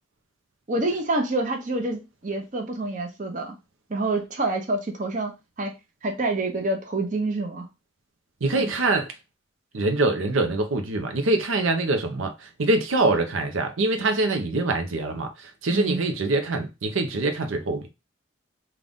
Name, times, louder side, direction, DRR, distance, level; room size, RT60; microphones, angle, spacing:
voice 1, 0.7-3.5 3.9-5.3 5.6-5.7 6.0-7.7 8.5-8.7 15.7-16.1, right 2 dB, 40° right, 0.8 m, -27 dB
voice 2, 8.4-9.1 9.7-17.9, right 2 dB, 85° right, 0.7 m, -24 dB
3.8 x 2.4 x 3.5 m
head